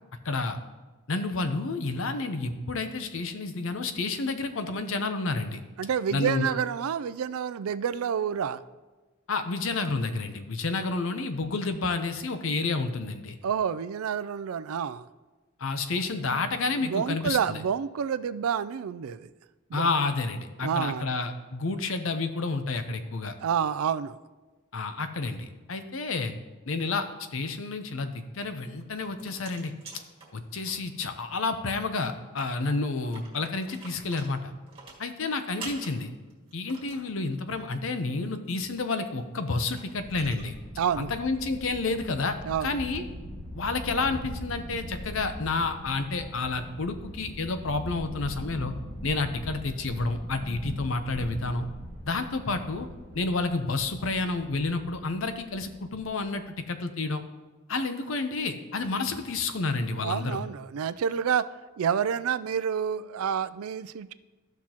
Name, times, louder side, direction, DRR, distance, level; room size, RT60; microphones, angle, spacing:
voice 1, 0.2-0.6 1.1-5.6 6.1-6.5 9.3-13.4 15.6-17.6 19.7-23.3 24.7-26.3 26.7-27.1 27.3-29.7 30.3-34.5 35.0-36.1 36.5-40.6 41.0-43.1 43.5-48.7 49.0-51.7 52.0-52.9 53.1-57.2 57.7-60.4, left 3 dB, 65° left, 9 dB, 0.7 m, -30 dB
voice 2, 5.8-8.6 13.4-15.1 16.8-19.3 19.7-19.9 20.6-21.1 23.4-24.2 40.8-41.1 42.5-42.8 60.0-61.4 61.8-64.1, right 7 dB, 80° right, 15 dB, 0.4 m, -28 dB
sound 1, 28.7-31.1 31.4-31.5 31.7-31.8 32.2-37.1 38.9-39.0 39.4-40.4, right 4 dB, 25° right, 2.0 m, -46 dB
sound 2, 39.9-56.3, equal, 5° left, 2.3 m, -41 dB
14.0 x 5.9 x 2.9 m, 1.2 s
head